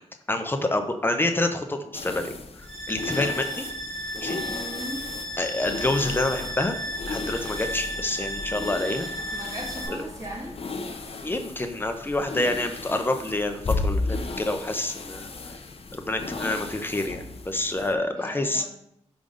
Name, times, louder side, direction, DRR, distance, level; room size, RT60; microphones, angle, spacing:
voice 1, 0.3-3.6 4.1-4.4 5.4-6.8 7.1-9.1 9.9-10.0 11.2-15.3 15.9-18.6, left 2 dB, 15° left, 6 dB, 0.7 m, -27 dB
sound 1, 1.9-17.9, left 3 dB, 55° left, 0.7 m, -35 dB
sound 2, 2.6-9.9, equal, 55° right, 1.4 m, -34 dB
voice 2, 4.5-5.0 9.3-10.6 18.2-18.6, right 1 dB, 25° right, -3 dB, 1.7 m, -37 dB
4.9 x 3.8 x 5.2 m, 0.76 s
cardioid pair, 75°, 12 cm